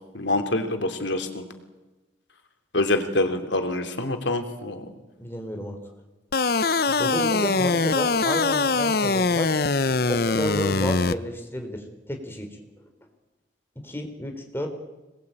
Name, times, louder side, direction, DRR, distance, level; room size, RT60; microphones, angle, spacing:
voice 1, 0.1-1.4 2.7-4.8, left 2 dB, 85° left, 6 dB, 3.0 m, -26 dB
voice 2, 5.2-5.8 6.9-9.6 10.1-12.5 13.8-14.7, equal, 15° left, 4 dB, 3.8 m, -31 dB
sound 1, 6.3-11.1, left 3 dB, 55° left, 0.8 m, -22 dB
26.5 x 20.5 x 9.0 m, 1.1 s
head